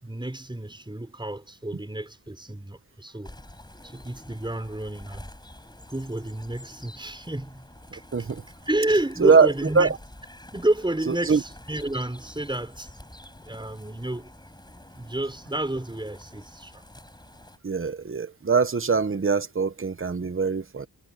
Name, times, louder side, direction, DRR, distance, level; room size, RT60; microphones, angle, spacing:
voice 1, 0.0-3.4 3.8-5.2 5.9-7.7 7.9-8.1 8.7-9.9 10.5-12.9 13.5-14.3 14.9-16.8, right 1 dB, 10° right, 6.0 m, -30 dB
sound 1, 3.2-17.6, left 1 dB, 10° left, 6.7 m, -48 dB
voice 2, 11.1-11.4 17.6-20.9, right 5 dB, 30° right, 1.1 m, -22 dB
wide cardioid pair, 125°, 40 cm